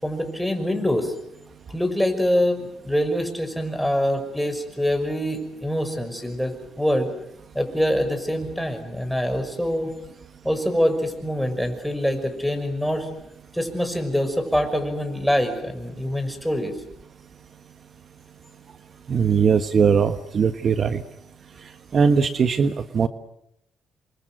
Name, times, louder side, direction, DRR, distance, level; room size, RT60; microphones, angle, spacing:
voice 1, 0.0-1.1 1.7-7.1 7.5-9.9 10.4-13.1 13.5-16.7, equal, ahead, 6 dB, 6.0 m, -24 dB
voice 2, 19.1-21.0 21.9-23.1, right 6 dB, 50° right, 10 dB, 1.3 m, -20 dB
28.5 x 24.0 x 7.9 m, 0.79 s
cardioid pair, 90°, 0 cm